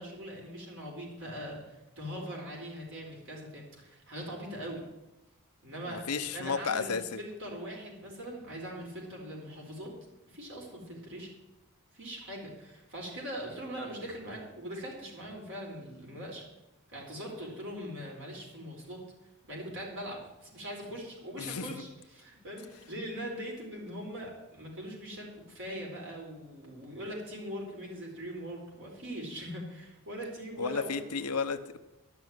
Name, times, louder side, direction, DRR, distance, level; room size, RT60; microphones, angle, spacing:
voice 1, 0.0-4.8 5.6-6.1 6.3-9.9 10.3-11.3 11.9-16.4 16.9-19.0 19.5-31.3, equal, 60° right, -1 dB, 4.4 m, -41 dB
voice 2, 5.9-7.2 21.4-21.8 30.6-31.8, left 5 dB, 85° left, 9 dB, 0.9 m, -33 dB
12.0 x 6.2 x 9.3 m, 0.99 s
head